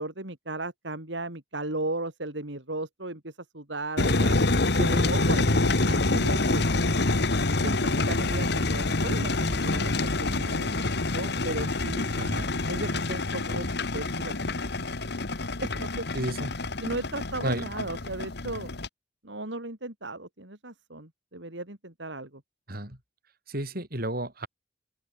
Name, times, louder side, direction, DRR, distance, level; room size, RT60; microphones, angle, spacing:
voice 1, 0.0-4.4 4.8-5.4 5.8-7.0 7.6-10.7 11.1-12.1 12.7-13.7 13.9-14.4 15.6-16.1 16.8-18.7 19.2-22.4, right 2 dB, 70° right, 3.7 m, -36 dB
sound 1, 4.0-18.9, left 2 dB, 60° left, 1.7 m, -26 dB
voice 2, 12.2-12.5 16.1-16.6 17.4-17.7 22.7-23.0 23.5-24.5, right 1 dB, 55° right, 7.0 m, -32 dB
open air
head